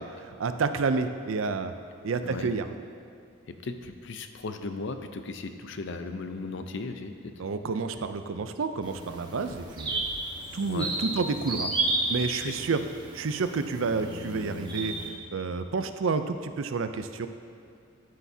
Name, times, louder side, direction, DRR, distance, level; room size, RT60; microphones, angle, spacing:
voice 1, 0.0-1.7 2.0-2.7 7.4-10.0 10.5-11.7 12.1-12.8 13.1-14.9 15.3-17.3, right 4 dB, 75° right, 9 dB, 0.5 m, -29 dB
voice 2, 3.6-7.3 10.7-10.9 12.4-12.5, left 3 dB, 65° left, 7 dB, 0.6 m, -36 dB
sound 1, 8.8-15.1, right 2 dB, 20° right, 1.1 m, -33 dB
9.8 x 9.4 x 2.7 m, 2.4 s
head